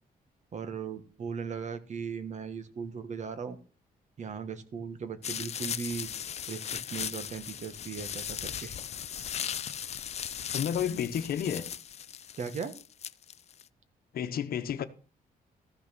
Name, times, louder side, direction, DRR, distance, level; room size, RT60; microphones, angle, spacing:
voice 1, 0.5-3.6 4.2-6.1 6.5-8.8 12.4-12.7, right 6 dB, 50° right, 1.4 m, -38 dB
sound 1, 5.2-13.6, left 9 dB, 45° left, 0.5 m, -38 dB
voice 2, 10.5-11.6 14.1-14.9, left 8 dB, 70° left, 1.1 m, -31 dB
14.5 x 6.2 x 6.1 m
cardioid pair, 135°, 16 cm